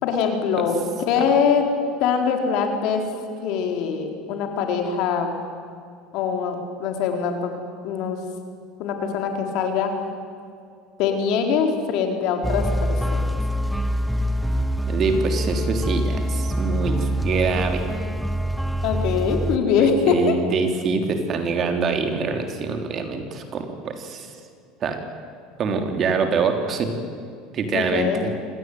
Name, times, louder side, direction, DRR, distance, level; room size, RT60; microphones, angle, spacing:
voice 1, 0.0-1.7 2.0-3.1 3.4-5.4 6.1-7.5 7.8-8.2 8.8-9.9 11.0-13.4 18.8-20.4 27.7-28.2, left 6 dB, 65° left, 4 dB, 4.4 m, -23 dB
sound 1, 12.4-19.6, equal, ahead, 0.9 m, -24 dB
voice 2, 14.9-17.9 19.8-24.3 24.8-25.0 25.6-26.9 27.5-28.3, right 4 dB, 40° right, 5 dB, 3.6 m, -25 dB
25.5 x 18.0 x 9.6 m, 2.3 s
supercardioid pair, 110°, 0 cm